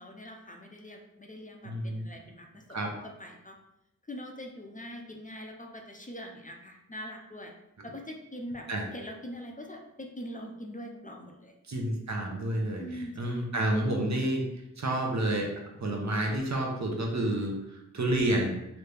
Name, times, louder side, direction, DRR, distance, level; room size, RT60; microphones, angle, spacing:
voice 1, 0.0-3.6 4.1-7.5 7.8-8.7 8.9-11.5 12.8-13.5, equal, 25° left, 2 dB, 0.5 m, -43 dB
voice 2, 1.6-2.1 2.7-2.9 7.8-7.9 8.7-8.9 11.7-14.4 14.8-15.5 15.8-17.5 17.9-18.6, right 1 dB, 60° right, 0 dB, 0.8 m, -29 dB
3.1 x 2.7 x 3.3 m, 0.88 s
wide cardioid pair, 45°, 32 cm